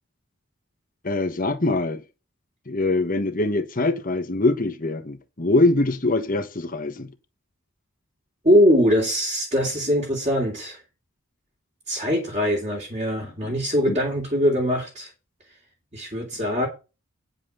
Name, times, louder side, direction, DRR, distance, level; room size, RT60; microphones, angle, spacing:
voice 1, 1.0-2.0 2.7-7.1 13.4-13.5 13.9-14.0, left 2 dB, 40° left, 1.2 m, -23 dB
voice 2, 8.4-10.8 11.9-15.1 15.9-16.7, equal, 30° right, 3.1 m, -22 dB
9.7 x 5.5 x 6.5 m
head